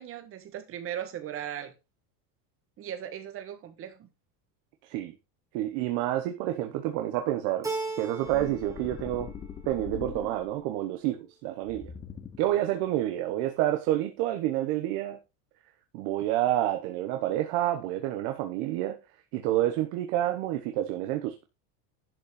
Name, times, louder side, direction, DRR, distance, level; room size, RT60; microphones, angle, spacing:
voice 1, 0.0-1.7 2.8-4.1, right 10 dB, 30° right, 1.5 m, -38 dB
voice 2, 4.8-5.1 5.5-7.7 8.0-9.3 9.6-11.9 12.4-15.2 15.9-19.0 19.3-21.4, right 13 dB, 55° right, 1.2 m, -29 dB
Keyboard (musical), 7.6-8.7 9.1-9.8, right 3 dB, 5° right, 1.7 m, -36 dB
sound 1, 8.2-10.7 11.6-12.6, left 7 dB, 15° left, 0.5 m, -42 dB
11.0 x 5.4 x 5.0 m
cardioid pair, 175°, 45 cm